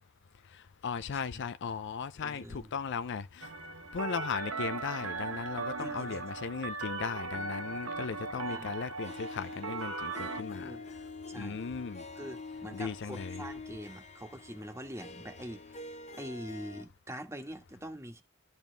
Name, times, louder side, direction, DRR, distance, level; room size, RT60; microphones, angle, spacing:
voice 1, 0.8-3.4 3.9-10.7 11.4-12.0 12.7-13.4, left 5 dB, 55° left, 0.5 m, -37 dB
voice 2, 2.2-2.7 5.8-6.2 8.5-8.7 10.5-10.9 11.3-11.6 12.2-18.2, right 1 dB, 15° right, 1.4 m, -44 dB
sound 1, 3.4-10.4, right 3 dB, 70° right, 1.0 m, -38 dB
Harp, 9.0-16.8, left 3 dB, 35° left, 1.0 m, -46 dB
12.0 x 4.1 x 3.3 m
head